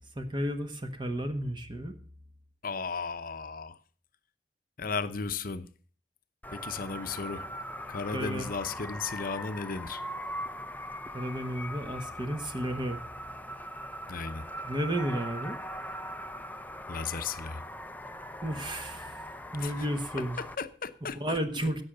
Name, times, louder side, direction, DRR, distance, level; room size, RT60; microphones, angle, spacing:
voice 1, 0.1-1.9 8.1-8.5 11.1-13.0 14.6-15.6 18.4-19.2 19.5-20.4 21.1-21.8, right 1 dB, 25° right, 1.4 m, -32 dB
voice 2, 2.6-3.8 4.8-5.7 6.5-7.5 7.9-10.0 14.1-14.5 16.9-17.7 19.6-19.9 20.4-21.7, left 4 dB, 55° left, 0.8 m, -35 dB
sound 1, 6.4-20.6, equal, 10° left, 0.6 m, -41 dB
16.5 x 6.4 x 6.7 m
head